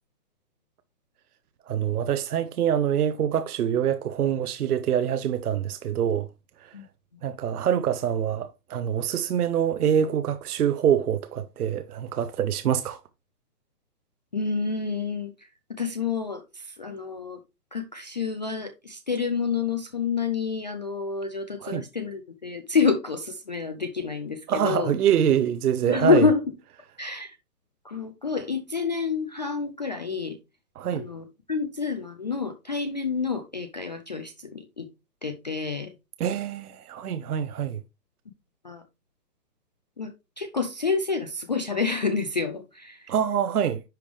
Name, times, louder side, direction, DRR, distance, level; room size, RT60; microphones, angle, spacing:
voice 1, 1.7-6.3 6.6-6.7 7.2-13.0 21.6-21.8 24.5-26.3 30.8-31.0 36.2-37.8 43.1-43.8, right 9 dB, 65° right, 0.7 m, -25 dB
voice 2, 14.3-17.4 17.7-24.9 25.9-26.4 27.0-27.4 27.8-30.4 30.9-34.9 35.2-35.9 38.6-38.8 40.0-43.1, left 5 dB, 30° left, 0.4 m, -28 dB
10.5 x 3.4 x 3.2 m
hypercardioid pair, 135°, 49 cm